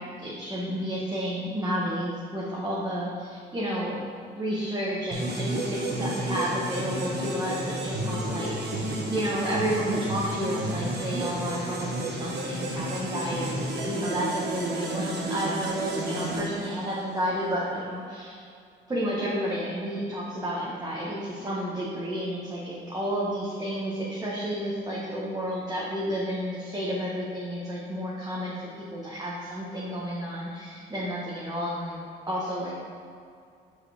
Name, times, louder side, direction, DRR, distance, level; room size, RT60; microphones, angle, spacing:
voice 1, 0.0-4.0 4.3-18.4 18.9-32.0 32.3-32.7, equal, 20° right, -7 dB, 1.5 m, -31 dB
sound 1, 5.1-17.2, right 1 dB, 55° right, 1.4 m, -31 dB
5.7 x 5.3 x 5.0 m, 2.3 s
cardioid pair, 90°, 20 cm